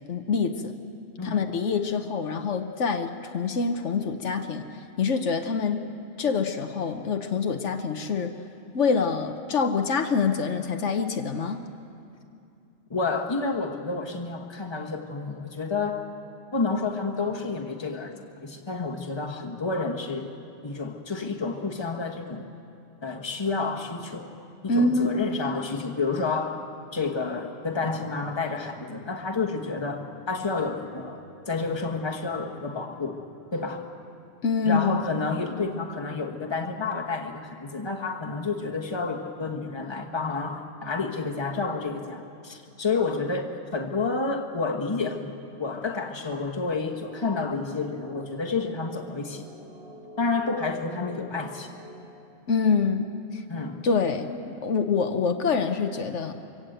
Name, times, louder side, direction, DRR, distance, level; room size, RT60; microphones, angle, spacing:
voice 1, 0.1-0.7 1.2-4.7 5.0-5.8 6.2-8.3 8.7-11.6 24.7-25.3 34.4-35.0 52.5-53.4 53.8-56.3, left 5 dB, 75° left, 6 dB, 1.3 m, -26 dB
voice 2, 1.2-1.5 12.9-16.1 16.5-20.3 20.6-22.5 23.0-24.3 24.6-26.6 26.9-33.2 33.5-33.9 34.6-45.3 45.6-49.4 50.2-51.7 53.5-53.8, left 4 dB, 20° left, 2 dB, 1.3 m, -30 dB
sound 1, 46.9-52.0, right 1 dB, 55° right, 3.0 m, -47 dB
24.0 x 16.5 x 7.9 m, 2.6 s
omnidirectional pair, 1.3 m